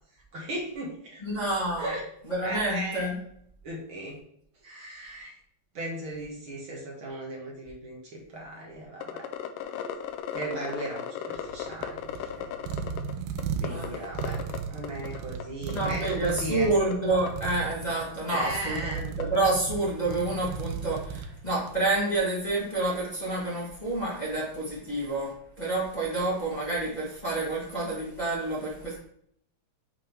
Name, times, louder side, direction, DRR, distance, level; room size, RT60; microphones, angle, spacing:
voice 1, 0.3-1.4 1.8-2.0 2.4-3.1 3.6-4.2 4.6-5.3 5.7-9.3 10.3-12.5 13.6-14.4 14.7-16.7 18.3-19.1, right 1 dB, 50° right, -3 dB, 1.6 m, -36 dB
voice 2, 1.2-1.9 2.3-3.1 13.7-13.9 15.7-29.0, right 2 dB, 45° left, -7 dB, 0.5 m, -28 dB
sound 1, 9.0-13.1 13.4-14.6 14.8-15.4 15.7-16.4 16.9-17.0 17.3-17.5 17.9-18.0 18.3-18.4 19.2-19.3, left 10 dB, 80° left, 2.0 m, -35 dB
sound 2, 11.4-21.9, right 6 dB, 85° right, 2.4 m, -36 dB
7.4 x 3.6 x 4.6 m, 0.67 s
omnidirectional pair, 4.2 m